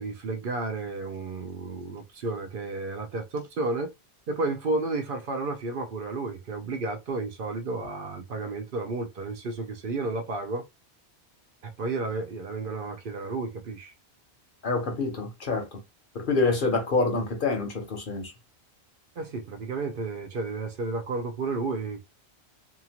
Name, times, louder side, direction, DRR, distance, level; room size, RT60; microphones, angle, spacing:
voice 1, 0.0-3.9 4.3-10.7 11.6-13.9 19.2-22.0, right 3 dB, 60° right, 0.7 m, -32 dB
voice 2, 14.6-15.8 16.1-18.3, left 3 dB, 55° left, 0.9 m, -27 dB
2.8 x 2.4 x 2.8 m
omnidirectional pair, 1.1 m